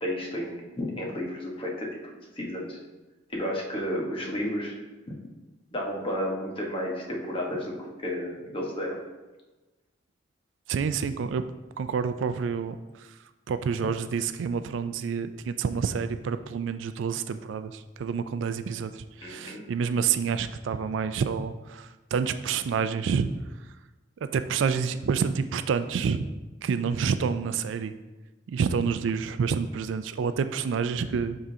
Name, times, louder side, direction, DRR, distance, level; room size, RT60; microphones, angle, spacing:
voice 1, 0.0-2.8 3.3-4.8 5.1-5.2 5.7-9.0 19.2-19.6, equal, 30° left, -2 dB, 1.2 m, -32 dB
voice 2, 10.7-11.4 11.8-12.8 13.5-23.3 24.3-26.2 26.6-27.9 28.5-31.4, right 6 dB, 80° right, 11 dB, 0.3 m, -28 dB
10.5 x 3.7 x 2.8 m, 1.2 s
head